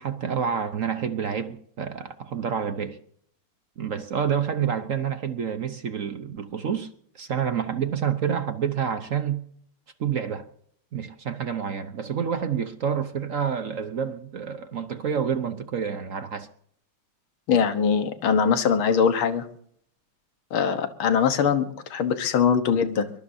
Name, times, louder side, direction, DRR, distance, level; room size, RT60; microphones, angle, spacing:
voice 1, 0.0-3.0 3.8-9.4 10.0-10.5 10.9-16.5, right 7 dB, 55° right, 0.9 m, -28 dB
voice 2, 17.5-19.5 20.5-23.1, left 6 dB, 70° left, 2.1 m, -22 dB
23.0 x 21.0 x 2.7 m
omnidirectional pair, 2.4 m